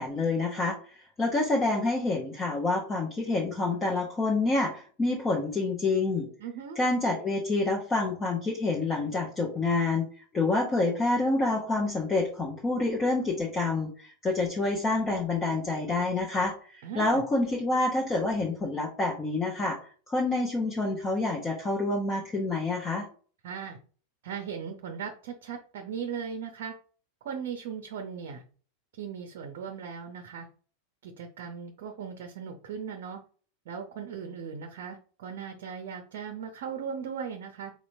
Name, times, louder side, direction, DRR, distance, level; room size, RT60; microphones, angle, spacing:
voice 1, 0.0-6.3 6.8-10.1 10.3-23.1, left 2 dB, 20° left, -1 dB, 0.9 m, -28 dB
voice 2, 6.4-6.8 16.8-17.2 23.4-23.8 24.2-26.7 27.2-28.4 28.9-30.5 31.0-33.2 33.7-37.7, right 7 dB, 55° right, 5 dB, 0.7 m, -38 dB
4.3 x 4.2 x 2.6 m, 0.41 s
figure-of-eight pair, 90°, 0 cm